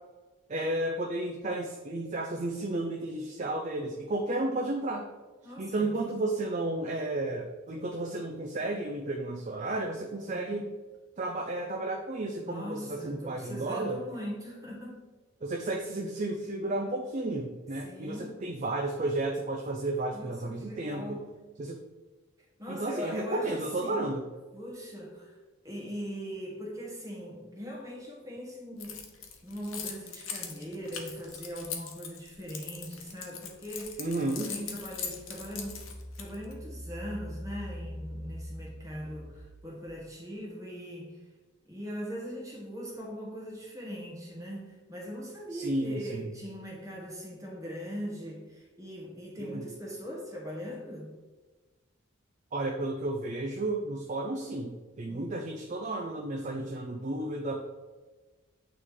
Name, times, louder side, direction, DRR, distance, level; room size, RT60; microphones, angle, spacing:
voice 1, 0.5-5.1 5.6-10.7 11.2-14.0 15.4-21.2 21.6-21.8 22.7-24.2 34.0-34.5 45.5-46.3 49.4-49.6 52.5-57.6, right 2 dB, 35° right, 2 dB, 0.4 m, -32 dB
voice 2, 5.4-6.1 10.3-10.6 12.4-15.1 17.8-18.5 20.1-21.5 22.6-24.0 24.5-25.3 25.6-29.1 29.4-34.0 34.4-35.8 36.2-41.2 41.7-51.1 55.1-55.3, equal, 15° right, -3 dB, 1.3 m, -40 dB
Keys jangling, 28.8-36.5, left 7 dB, 85° left, 0.9 m, -40 dB
Engine, 34.2-40.0, equal, 65° right, 1.4 m, -44 dB
8.7 x 3.2 x 3.6 m, 1.3 s
head